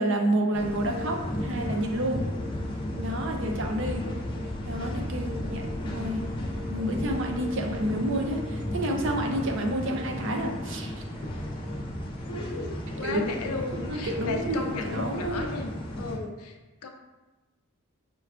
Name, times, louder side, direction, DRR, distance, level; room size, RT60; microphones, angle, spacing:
voice 1, 0.0-2.3 3.0-4.1 4.6-6.2 6.7-10.9 13.0-13.4 13.9-15.5, right 1 dB, 55° right, 3 dB, 0.5 m, -29 dB
sound 1, 0.5-16.2, equal, 20° left, 0.4 m, -34 dB
sound 2, 2.2-9.9, left 3 dB, 5° left, 0.7 m, -42 dB
voice 2, 3.9-4.3 12.3-16.9, left 3 dB, 85° left, 3 dB, 0.5 m, -36 dB
5.5 x 2.3 x 2.3 m, 1.1 s
head